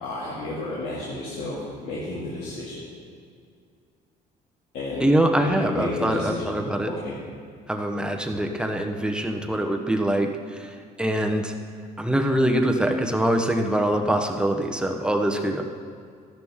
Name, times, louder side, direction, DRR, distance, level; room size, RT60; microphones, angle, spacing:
voice 1, 0.0-2.8 4.7-5.1 5.4-6.4 6.8-7.1, left 2 dB, 80° left, -7 dB, 2.4 m, -31 dB
voice 2, 5.0-6.9 7.7-11.5 12.0-15.6, right 1 dB, 5° right, 3 dB, 1.0 m, -24 dB
13.0 x 11.0 x 3.7 m, 2.2 s
cardioid pair, 110°, 17 cm